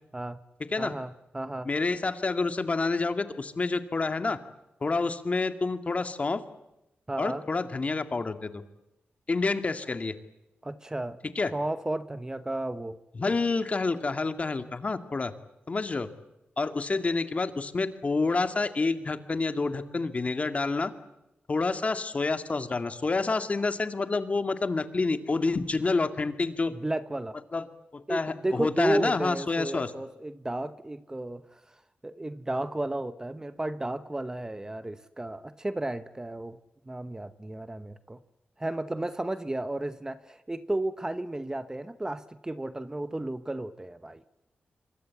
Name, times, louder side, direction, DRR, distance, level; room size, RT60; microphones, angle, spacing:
voice 1, 0.8-1.7 7.1-7.4 10.6-11.2 11.5-13.0 26.7-27.4 28.1-31.6 32.0-36.6 36.9-38.2 38.6-44.2, right 1 dB, 15° right, 12 dB, 0.9 m, -33 dB
voice 2, 1.6-4.4 4.8-6.4 7.2-8.6 9.3-10.1 11.4-11.5 13.1-15.3 15.7-16.1 16.6-20.9 21.5-26.7 27.5-27.6 27.9-29.9, left 3 dB, 35° left, 9 dB, 2.1 m, -28 dB
26.0 x 24.0 x 8.4 m, 0.92 s
wide cardioid pair, 100°, 4 cm